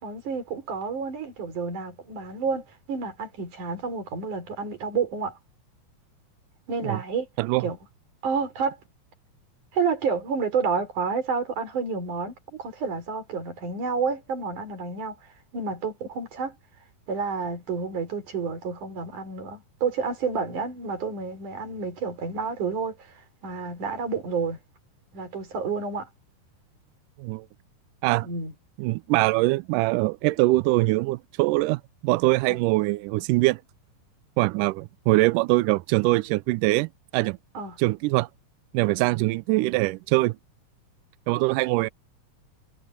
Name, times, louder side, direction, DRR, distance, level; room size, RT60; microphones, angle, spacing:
voice 1, 0.0-5.3 6.7-7.3 7.6-7.8 8.2-8.8 9.7-15.2 15.5-16.6 17.1-23.1 23.4-24.6 25.1-26.1 28.2-28.5 37.5-37.8, right 5 dB, 55° right, 6.0 m, -29 dB
voice 2, 28.8-33.6 34.4-37.4 37.8-38.3 38.7-40.4 41.3-41.9, right 21 dB, 85° right, 1.9 m, -23 dB
omnidirectional pair, 4.2 m